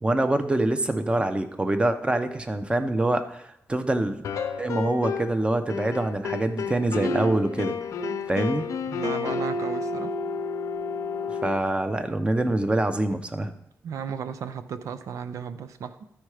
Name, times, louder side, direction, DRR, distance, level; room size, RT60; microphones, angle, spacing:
voice 1, 0.0-4.2 4.6-7.7 8.3-8.6 11.4-13.5, right 2 dB, 20° right, 8 dB, 0.8 m, -25 dB
sound 1, 4.2-5.4 5.7-11.6, left 4 dB, 85° left, 0.7 m, -30 dB
voice 2, 8.9-10.1 13.8-16.0, right 7 dB, 85° right, 11 dB, 0.6 m, -35 dB
13.0 x 4.6 x 4.9 m, 0.78 s
cardioid pair, 85°, 5 cm